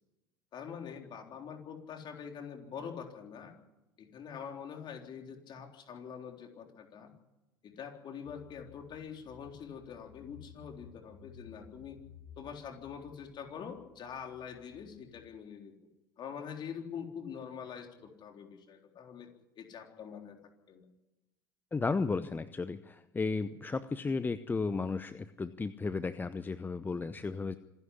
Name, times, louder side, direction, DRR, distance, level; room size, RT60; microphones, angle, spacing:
voice 1, 0.5-3.6 4.0-7.1 7.6-12.0 12.4-15.7 16.2-19.3 19.6-20.4 20.7-20.9, left 7 dB, 40° left, 3 dB, 3.8 m, -45 dB
Car / Engine, 8.2-15.3, left 6 dB, 70° left, 4.8 m, -57 dB
voice 2, 21.7-27.6, left 4 dB, 15° left, 13 dB, 0.8 m, -34 dB
26.5 x 11.5 x 9.9 m, 1.0 s
hypercardioid pair, 80°, 12 cm